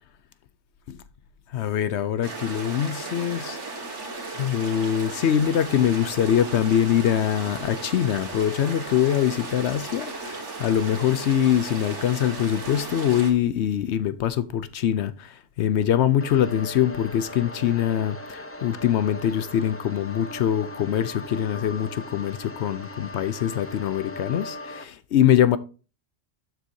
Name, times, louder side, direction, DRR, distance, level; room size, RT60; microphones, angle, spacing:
voice 1, 1.5-3.6 4.4-25.6, left 10 dB, 70° left, 0.8 m, -23 dB
sound 1, 2.2-13.3, right 3 dB, 70° right, 2.0 m, -36 dB
sound 2, 16.2-24.8, left 1 dB, 15° left, 0.5 m, -39 dB
13.0 x 4.6 x 2.7 m
omnidirectional pair, 1.2 m